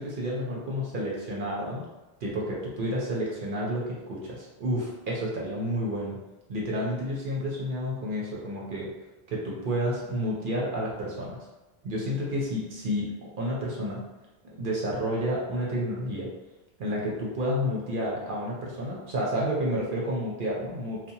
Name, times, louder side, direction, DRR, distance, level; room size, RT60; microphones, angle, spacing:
voice 1, 0.0-1.8 2.2-6.2 6.5-8.9 9.3-11.4 11.8-13.1 13.4-14.0 14.6-16.3 16.8-21.0, equal, 60° right, -4 dB, 0.7 m, -30 dB
2.8 x 2.1 x 2.6 m, 1.1 s
omnidirectional pair, 1.1 m